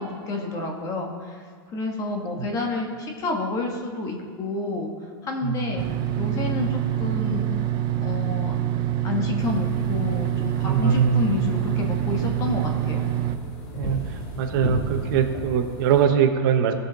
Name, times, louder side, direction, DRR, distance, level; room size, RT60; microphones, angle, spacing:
voice 1, 0.0-1.4 1.7-4.9 5.2-5.9 6.1-7.4 8.0-8.5 9.0-13.1, left 3 dB, 25° left, 1 dB, 1.3 m, -29 dB
voice 2, 5.4-5.8 10.6-11.2 13.8-16.7, right 8 dB, 50° right, 5 dB, 1.0 m, -22 dB
sound 1, 5.8-13.4, right 11 dB, 30° right, 0.4 m, -26 dB
sound 2, 9.4-16.1, equal, 40° left, 2.6 m, -35 dB
16.0 x 5.6 x 3.9 m, 2.1 s
supercardioid pair, 155°, 14 cm